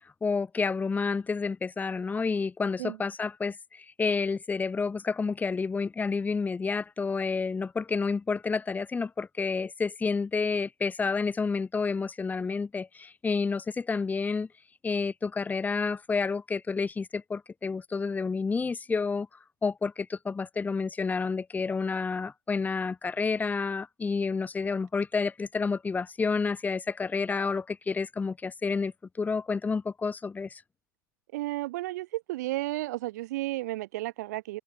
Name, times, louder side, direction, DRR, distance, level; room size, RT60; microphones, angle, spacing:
voice 1, 0.2-14.5 14.8-19.3 19.6-28.9 29.2-30.6, left 4 dB, 15° left, 1.8 m, -29 dB
voice 2, 31.3-34.6, right 18 dB, 55° right, 0.5 m, -33 dB
open air
figure-of-eight pair, 80°, 11 cm